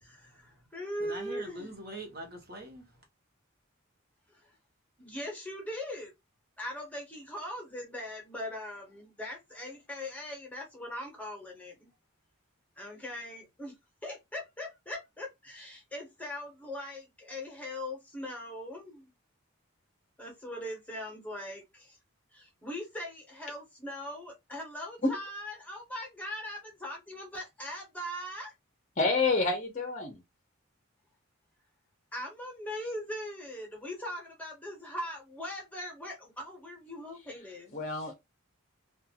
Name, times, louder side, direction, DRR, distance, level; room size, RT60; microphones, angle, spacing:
voice 1, 0.0-1.8 4.3-4.5 5.0-6.1 6.6-11.9 12.8-13.7 14.0-19.1 20.2-22.0 22.3-28.5 32.1-37.8, left 1 dB, 5° left, 0.8 m, -40 dB
voice 2, 1.0-2.9, right 1 dB, 45° right, 1.0 m, -43 dB
voice 3, 29.0-30.2 37.7-38.2, left 3 dB, 35° left, 0.6 m, -28 dB
2.4 x 2.3 x 2.8 m
head